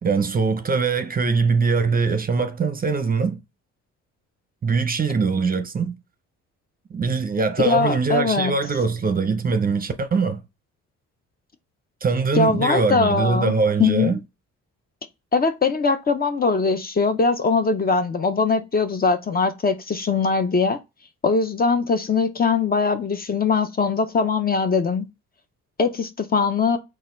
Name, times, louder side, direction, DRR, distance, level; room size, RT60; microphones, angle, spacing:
voice 1, 0.0-3.4 4.6-6.0 6.9-10.4 12.0-14.2, right 4 dB, 30° right, 0.6 m, -22 dB
voice 2, 7.6-8.5 12.3-13.5 13.8-14.1 15.3-20.8 21.2-25.0 25.8-26.8, left 4 dB, 30° left, 0.6 m, -21 dB
4.1 x 2.4 x 3.7 m
cardioid pair, 90°, 30 cm